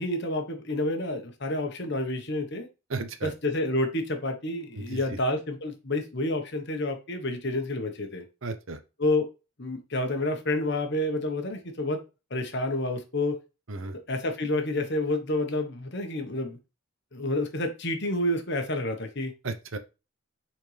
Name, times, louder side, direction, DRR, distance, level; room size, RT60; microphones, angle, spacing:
voice 1, 0.0-2.7 3.2-8.2 9.0-9.3 9.6-12.0 12.3-13.4 13.9-16.6 17.1-19.3, left 1 dB, 50° left, 5 dB, 1.3 m, -29 dB
voice 2, 2.9-3.3 4.7-5.2 8.4-8.8 13.7-14.0 19.4-19.8, right 3 dB, 65° right, 10 dB, 0.9 m, -34 dB
6.6 x 4.3 x 3.4 m, 0.28 s
head